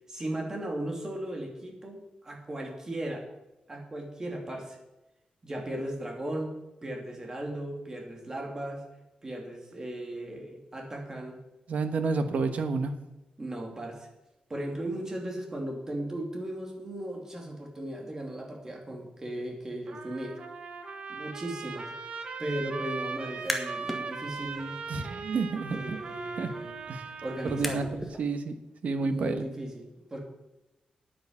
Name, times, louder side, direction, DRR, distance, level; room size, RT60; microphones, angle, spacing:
voice 1, 0.1-3.2 3.7-4.8 5.4-8.9 9.2-11.4 13.4-14.1 14.5-20.4 21.1-21.9 22.4-24.8 25.7-26.8 27.2-28.0 29.0-30.2, right 1 dB, 20° right, 1 dB, 2.6 m, -36 dB
voice 2, 11.7-12.9 24.9-26.0 26.4-26.5 26.9-27.0 27.4-27.8 28.2-28.5 28.8-29.4, right 4 dB, 65° right, 8 dB, 1.3 m, -29 dB
Trumpet, 19.9-27.7, right 4 dB, 50° right, 1.4 m, -39 dB
sound 1, 23.2-24.0 24.4-28.2, equal, ahead, 1.6 m, -39 dB
9.5 x 8.9 x 7.3 m, 0.98 s
wide cardioid pair, 165°, 3 cm